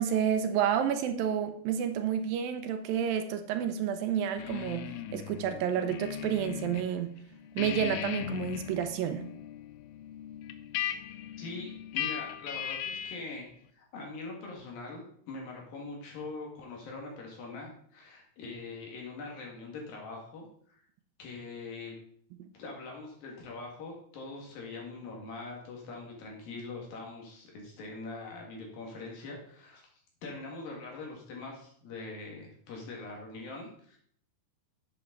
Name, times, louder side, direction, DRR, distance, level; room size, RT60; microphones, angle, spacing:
voice 1, 0.0-4.9 5.1-7.1 7.6-9.2 22.4-22.5, right 9 dB, 75° right, 8 dB, 2.4 m, -30 dB
sound 1, 4.4-6.9 7.2-13.3, left 11 dB, 85° left, 2.5 m, -38 dB
voice 2, 11.4-13.5 13.8-20.8 21.2-21.9 22.6-29.8 30.2-34.0, left 3 dB, 70° left, -1 dB, 4.0 m, -43 dB
10.5 x 8.0 x 4.1 m, 0.63 s
omnidirectional pair, 4.3 m